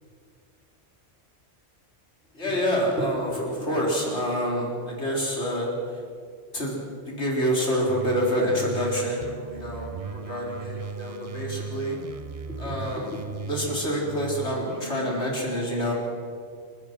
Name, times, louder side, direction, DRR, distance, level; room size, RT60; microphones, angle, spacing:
voice 1, 2.3-6.0 6.5-6.8 7.1-12.0 12.5-15.9, equal, 65° left, -2 dB, 4.7 m, -27 dB
sound 1, 7.9-15.3, right 5 dB, 35° right, 0.7 m, -37 dB
29.0 x 16.0 x 6.2 m, 2.1 s
omnidirectional pair, 1.2 m